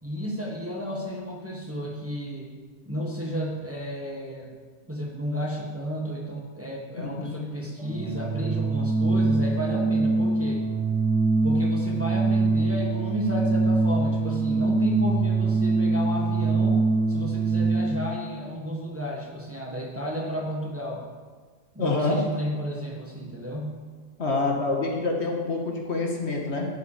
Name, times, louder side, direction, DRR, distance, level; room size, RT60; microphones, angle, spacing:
voice 1, 0.0-2.5 2.8-4.5 4.8-10.6 11.4-16.8 17.1-21.0 21.7-23.7, equal, 10° right, -2 dB, 1.5 m, -32 dB
voice 2, 7.0-7.4 21.8-22.2 24.2-26.7, left 3 dB, 70° left, 0 dB, 1.9 m, -27 dB
Organ, 7.8-18.1, right 3 dB, 80° right, 1.9 m, -24 dB
11.5 x 8.3 x 5.1 m, 1.5 s
omnidirectional pair, 1.2 m